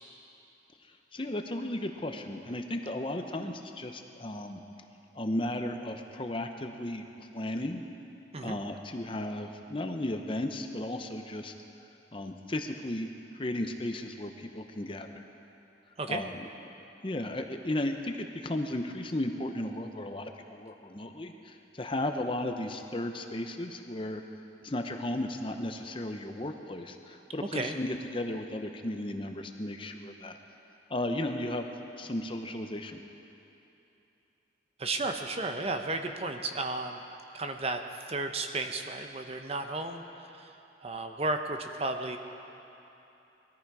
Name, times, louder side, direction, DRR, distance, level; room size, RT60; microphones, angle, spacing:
voice 1, 1.1-4.6 5.1-7.0 7.3-7.8 8.4-11.5 12.1-13.1 13.3-15.2 16.1-16.4 17.0-24.2 24.6-30.4 30.9-31.7 32.0-33.0, left 1 dB, 30° left, 5 dB, 0.7 m, -35 dB
voice 2, 34.8-37.0 37.3-40.6 40.8-42.2, right 2 dB, 35° right, 6 dB, 0.7 m, -33 dB
20.0 x 14.0 x 4.8 m, 2.9 s
head